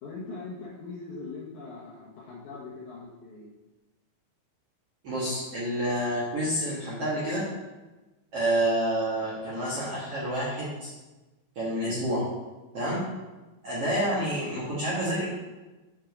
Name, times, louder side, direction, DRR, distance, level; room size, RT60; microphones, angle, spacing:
voice 1, 0.0-3.5, left 3 dB, 65° left, -4 dB, 2.0 m, -41 dB
voice 2, 5.0-7.4 8.3-10.9 11.6-12.2 12.7-13.1 13.6-15.3, right 1 dB, 55° right, -7 dB, 1.7 m, -28 dB
7.4 x 5.4 x 5.1 m, 1.1 s
omnidirectional pair, 4.7 m